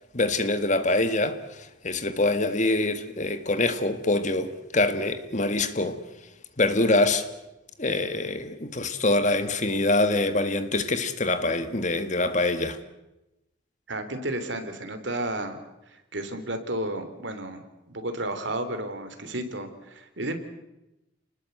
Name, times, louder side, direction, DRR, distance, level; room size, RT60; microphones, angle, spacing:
voice 1, 0.1-6.0 6.6-7.3 7.8-12.8, left 2 dB, 40° left, 1.8 m, -25 dB
voice 2, 13.9-15.6 15.9-20.4, right 1 dB, 65° right, 3.3 m, -32 dB
29.5 x 20.0 x 8.1 m
head